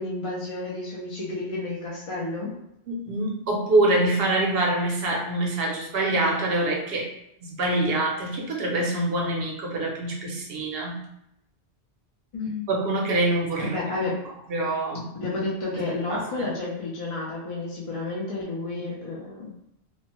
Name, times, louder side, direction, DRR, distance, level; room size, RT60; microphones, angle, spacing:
voice 1, 0.0-2.5 12.3-12.7 13.6-14.2 15.1-19.5, left 2 dB, 40° left, -5 dB, 0.5 m, -31 dB
voice 2, 2.9-7.1 7.4-11.0 12.7-13.8 14.5-15.1 16.1-16.5, right 2 dB, 65° right, -1 dB, 0.8 m, -25 dB
2.9 x 2.1 x 2.9 m, 0.80 s
omnidirectional pair, 1.1 m